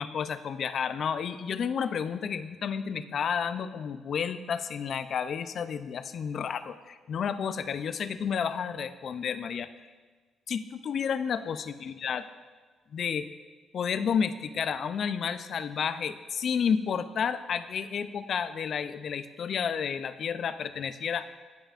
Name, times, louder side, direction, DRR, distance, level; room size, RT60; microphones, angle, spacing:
voice 1, 0.0-9.7 10.5-12.2 12.9-13.3 13.7-21.4, left 7 dB, 60° left, 12 dB, 0.4 m, -31 dB
16.0 x 5.5 x 2.5 m, 1.4 s
cardioid pair, 90°, 0 cm